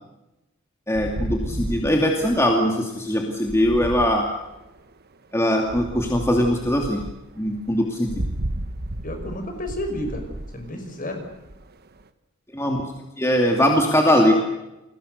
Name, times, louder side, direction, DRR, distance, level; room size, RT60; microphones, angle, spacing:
voice 1, 0.9-4.2 5.3-7.0 7.4-8.2 12.5-12.8 13.2-14.3, equal, 15° left, 1 dB, 2.6 m, -21 dB
sound 1, 0.9-4.9 5.6-12.0, right 1 dB, 50° right, 1.3 m, -33 dB
voice 2, 9.0-11.2, left 1 dB, 40° left, 5 dB, 5.9 m, -31 dB
29.5 x 23.0 x 6.8 m, 0.98 s
head